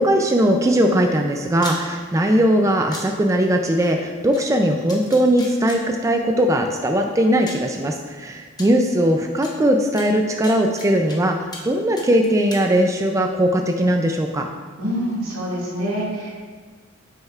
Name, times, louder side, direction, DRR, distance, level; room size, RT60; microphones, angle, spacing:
voice 1, 0.0-14.5, right 1 dB, 15° right, 3 dB, 0.3 m, -19 dB
sound 1, 1.6-1.8 2.9-3.0 4.3-4.4 4.9-5.8 6.8-6.9 7.5-7.7 8.6-8.7 9.4-9.5 10.0-11.2 11.5-11.7 12.0-12.6, left 2 dB, 20° left, 1.0 m, -35 dB
voice 2, 14.8-16.4, equal, 85° right, -5 dB, 2.0 m, -26 dB
8.6 x 6.4 x 2.4 m, 1.5 s
head